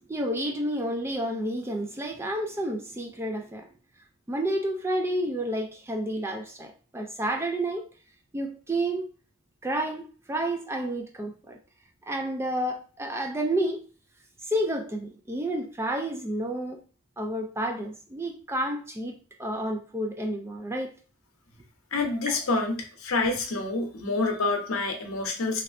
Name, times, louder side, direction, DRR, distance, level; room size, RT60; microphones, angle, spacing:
voice 1, 0.1-3.7 4.3-7.9 8.3-9.1 9.6-11.6 12.1-13.9 14.4-16.8 17.2-21.0 22.3-22.4, right 1 dB, 10° right, 0.3 m, -30 dB
voice 2, 21.9-25.6, left 3 dB, 70° left, 0.8 m, -27 dB
3.1 x 2.9 x 2.5 m
head